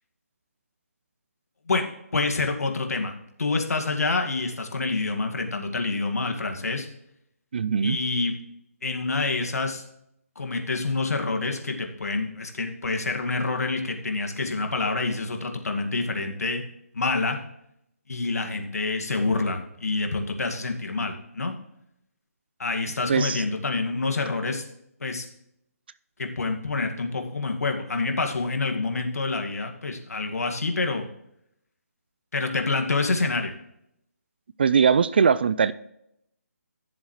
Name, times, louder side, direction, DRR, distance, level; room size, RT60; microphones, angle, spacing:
voice 1, 1.7-6.9 7.8-8.4 8.8-9.8 10.4-16.6 16.9-17.4 18.1-21.5 22.6-24.6 25.0-25.3 26.2-31.1 32.3-33.5, left 3 dB, 75° left, 2.1 m, -27 dB
voice 2, 7.5-8.0 23.1-23.4 34.6-35.7, right 6 dB, 40° right, 0.4 m, -20 dB
14.0 x 7.3 x 3.2 m
hypercardioid pair, 165°, 8 cm